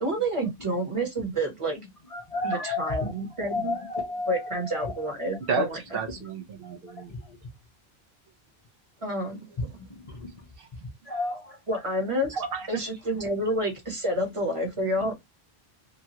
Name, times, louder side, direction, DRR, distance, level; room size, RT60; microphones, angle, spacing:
voice 1, 0.0-1.8 2.4-3.7 4.3-6.0 9.0-9.4 11.7-12.3 12.7-15.1, right 1 dB, 30° right, 1.0 m, -29 dB
voice 2, 2.1-3.2 3.5-5.4 6.2-6.3 7.0-7.4 9.6-10.5 11.0-11.8 13.3-13.4 14.5-14.6, left 2 dB, 40° left, 0.6 m, -33 dB
voice 3, 5.9-7.1 10.6-10.7 12.3-12.7, right 6 dB, 70° right, 0.7 m, -31 dB
3.0 x 2.3 x 2.7 m
omnidirectional pair, 1.1 m